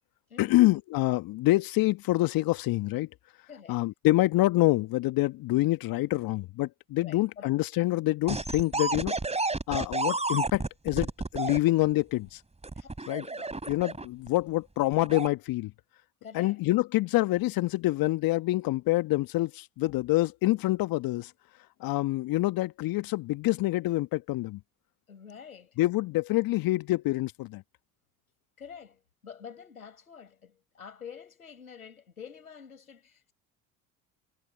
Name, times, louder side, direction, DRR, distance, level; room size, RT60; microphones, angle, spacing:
voice 1, 0.4-3.1 3.7-9.1 9.7-12.4 13.1-15.7 16.3-21.3 21.8-24.6 25.8-27.6, left 18 dB, 55° left, 1.4 m, -26 dB
voice 2, 3.5-3.8 7.0-7.5 12.8-13.6 16.2-16.6 25.1-25.7 28.6-33.3, left 7 dB, 90° left, 5.1 m, -47 dB
sound 1, 8.3-11.6 12.6-14.3 14.9-15.3, right 3 dB, 15° right, 4.2 m, -31 dB
figure-of-eight pair, 60°, 42 cm